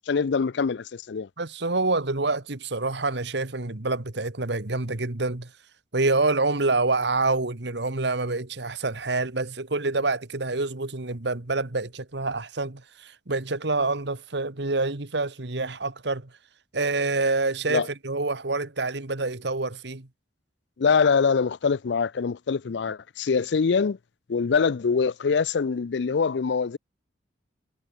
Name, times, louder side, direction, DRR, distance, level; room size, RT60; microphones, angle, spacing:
voice 1, 0.1-1.3 17.7-17.9 20.8-24.0 24.3-26.8, left 5 dB, 65° left, 0.5 m, -24 dB
voice 2, 1.4-5.5 5.9-16.3 16.7-20.1, right 3 dB, 70° right, 1.7 m, -27 dB
head